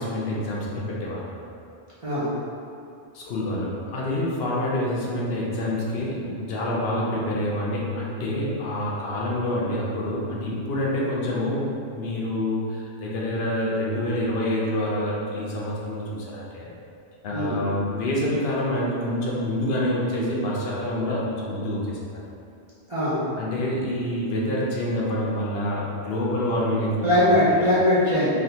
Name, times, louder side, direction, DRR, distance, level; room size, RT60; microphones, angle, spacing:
voice 1, 0.0-1.4 3.1-16.7 17.2-22.2 23.4-27.1, left 1 dB, 70° left, -4 dB, 0.8 m, -27 dB
voice 2, 2.0-2.3 17.3-17.6 22.9-23.2 27.0-28.4, left 1 dB, 40° right, -11 dB, 0.5 m, -21 dB
3.3 x 2.4 x 2.7 m, 2.4 s
omnidirectional pair, 1.1 m